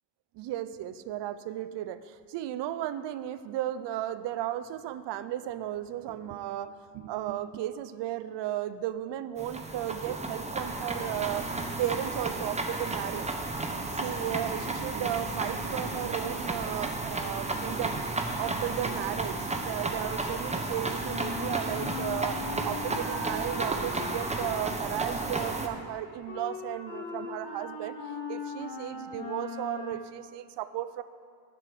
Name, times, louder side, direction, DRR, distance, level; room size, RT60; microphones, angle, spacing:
voice 1, 0.3-11.5 11.8-13.3 14.0-18.0 18.4-27.9 28.3-31.0, right 12 dB, 75° right, 14 dB, 0.6 m, -35 dB
sound 1, 9.4-25.7, right 2 dB, 15° right, 1.0 m, -33 dB
Wind instrument woodwind instrument, 21.0-30.1, left 3 dB, 80° left, 2.3 m, -40 dB
9.6 x 4.9 x 7.5 m, 2.3 s
cardioid pair, 70°, 42 cm